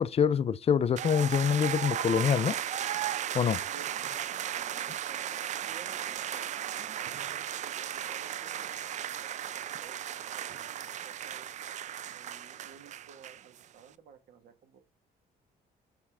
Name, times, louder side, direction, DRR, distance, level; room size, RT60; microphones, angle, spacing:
voice 1, 0.0-2.6 3.3-3.6, left 7 dB, 35° left, 0.5 m, -25 dB
sound 1, 1.0-13.6, right 10 dB, 45° right, 0.4 m, -36 dB
voice 2, 3.7-5.3 5.6-6.5 6.8-7.2 7.6-11.5 12.0-14.8, right 7 dB, 65° right, 1.7 m, -55 dB
7.1 x 4.3 x 3.5 m
cardioid pair, 110°, 17 cm